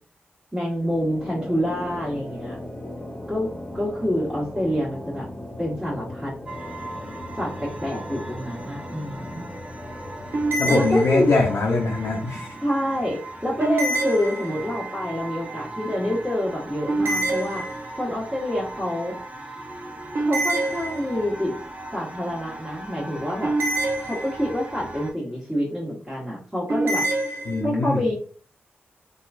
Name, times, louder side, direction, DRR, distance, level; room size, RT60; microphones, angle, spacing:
voice 1, 0.5-2.6 3.3-5.3 5.6-6.3 7.4-9.5 10.7-11.3 12.6-17.7 18.0-19.2 20.2-21.5 21.9-23.6 24.0-27.1 27.6-28.1, equal, 10° right, -8 dB, 1.3 m, -27 dB
sound 1, 0.7-13.9, left 1 dB, 15° left, 0.9 m, -38 dB
sound 2, 6.5-25.1, right 2 dB, 25° right, 0.8 m, -39 dB
sound 3, 10.3-11.6 13.6-14.9 16.9-18.2 20.1-21.4 23.4-24.7 26.7-27.6, right 2 dB, 60° right, 0.7 m, -26 dB
voice 2, 10.6-12.5 27.5-28.0, left 3 dB, 65° left, 0 dB, 0.5 m, -22 dB
2.9 x 2.3 x 2.5 m, 0.40 s
supercardioid pair, 40°, 5 cm